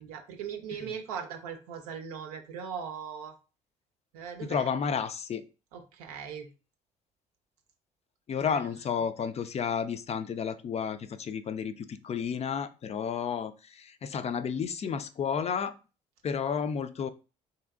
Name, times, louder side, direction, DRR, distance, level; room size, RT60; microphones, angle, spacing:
voice 1, 0.0-3.3 4.1-4.7 5.7-6.5 8.4-8.6, right 7 dB, 85° right, 5 dB, 0.6 m, -39 dB
voice 2, 4.4-5.4 8.3-15.8 16.2-17.1, left 7 dB, 35° left, 12 dB, 0.4 m, -32 dB
2.9 x 2.7 x 2.4 m, 0.32 s
hypercardioid pair, 55°, 18 cm